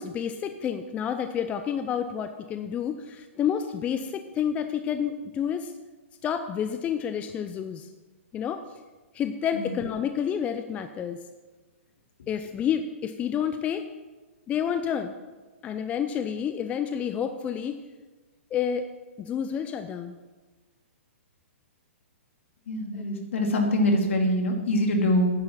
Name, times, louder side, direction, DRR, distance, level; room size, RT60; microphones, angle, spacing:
voice 1, 0.0-5.7 6.2-7.9 8.3-8.6 9.1-11.2 12.3-13.9 14.5-15.1 15.6-17.8 18.5-18.9 19.2-20.2 23.0-23.2, left 8 dB, 20° left, 8 dB, 0.5 m, -29 dB
voice 2, 22.7-25.3, left 1 dB, 70° left, 3 dB, 2.4 m, -24 dB
9.7 x 6.4 x 7.3 m, 1.3 s
hypercardioid pair, 135°, 7 cm